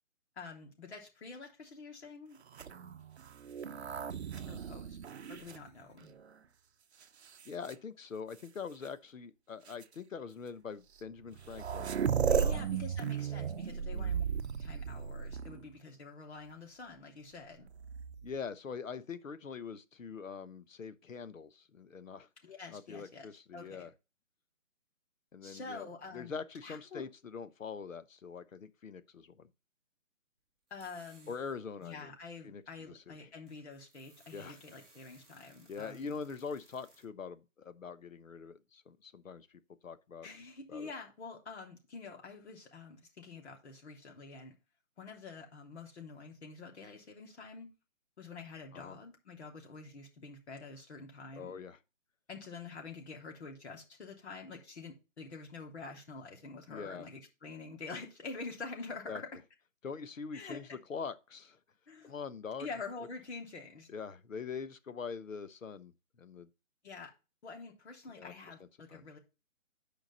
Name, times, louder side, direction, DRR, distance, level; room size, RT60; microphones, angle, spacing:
voice 1, 0.4-2.4 4.5-5.0 5.3-6.1 12.3-17.7 22.4-23.3 23.5-23.9 25.4-26.4 26.6-27.1 30.7-31.3 31.8-36.1 40.2-44.5 45.0-47.7 48.2-51.6 52.3-59.3 60.3-60.8 61.9-62.2 62.6-63.9 66.8-67.1 67.4-69.2, left 4 dB, 55° left, 3.1 m, -47 dB
sound 1, 2.5-6.3 7.0-7.7 8.8-8.9 9.7-9.8 11.0-11.1 11.3-15.7 17.7-18.4, right 7 dB, 55° right, 0.7 m, -35 dB
voice 2, 7.4-12.0 12.4-12.7 13.8-14.1 18.2-22.3 22.7-23.9 25.3-25.8 26.1-29.5 31.3-32.1 32.4-33.3 34.3-34.6 35.7-39.5 39.8-40.3 40.7-40.9 48.7-49.0 51.4-51.8 56.7-57.1 59.1-59.2 59.8-61.6 62.0-62.7 63.9-65.9 66.2-66.5 68.2-68.3 68.9-69.0, left 5 dB, 80° left, 1.1 m, -43 dB
sound 2, 30.7-32.0 32.6-32.7 33.2-37.0, right 2 dB, ahead, 1.2 m, -64 dB
9.2 x 5.1 x 3.9 m
hypercardioid pair, 165°, 39 cm